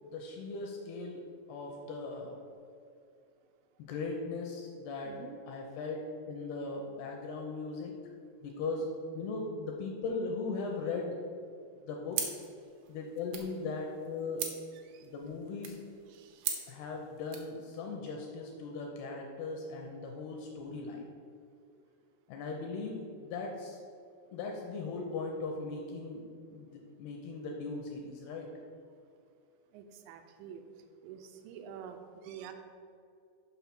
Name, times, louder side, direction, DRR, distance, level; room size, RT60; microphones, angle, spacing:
voice 1, 0.0-1.2 1.5-2.8 3.8-5.2 5.5-8.0 8.4-8.9 9.1-11.2 11.8-12.4 12.9-14.5 15.0-15.8 16.7-21.1 22.3-23.8 24.3-26.2 26.5-28.5, left 3 dB, 80° left, 1 dB, 2.4 m, -38 dB
voice 2, 5.0-5.4 14.9-15.1 16.1-16.6 29.7-30.6 31.0-32.5, right 8 dB, 90° right, 6 dB, 3.0 m, -48 dB
sound 1, 12.1-17.5, right 7 dB, 75° right, 2.8 m, -41 dB
7.0 x 5.8 x 6.0 m, 2.4 s
omnidirectional pair, 5.3 m